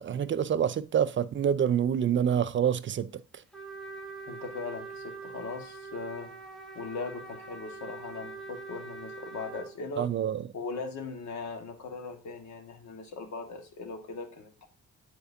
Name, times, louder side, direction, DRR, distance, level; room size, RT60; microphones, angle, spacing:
voice 1, 0.0-3.1 10.0-10.4, right 9 dB, 40° right, 0.4 m, -27 dB
Trumpet, 3.5-9.7, right 3 dB, ahead, 1.5 m, -43 dB
voice 2, 4.3-6.3 6.7-10.1 10.5-14.7, left 4 dB, 65° left, 1.6 m, -39 dB
10.5 x 4.4 x 2.7 m
cardioid pair, 90°, 30 cm